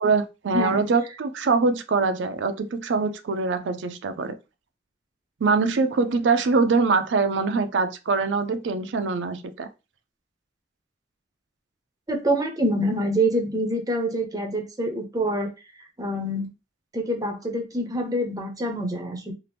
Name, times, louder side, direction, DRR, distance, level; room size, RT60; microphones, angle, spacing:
voice 1, 0.0-4.4 5.4-9.7, right 4 dB, 85° right, 0.4 m, -23 dB
voice 2, 0.5-0.9 12.1-15.5 16.0-16.5 16.9-19.3, right 1 dB, 20° right, 0.6 m, -26 dB
2.7 x 2.5 x 3.3 m
head